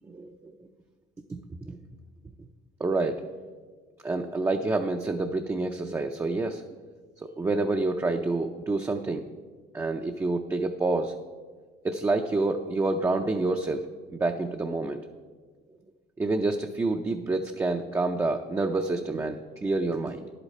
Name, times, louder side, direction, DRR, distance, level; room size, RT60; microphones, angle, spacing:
voice 1, 0.1-0.5 1.6-1.8 2.8-3.2 4.0-6.6 7.4-9.3 9.7-11.1 11.8-15.0 16.2-20.2, right 3 dB, 15° right, 4 dB, 0.5 m, -28 dB
10.5 x 8.2 x 4.2 m, 1.5 s
cardioid pair, 110°, 17 cm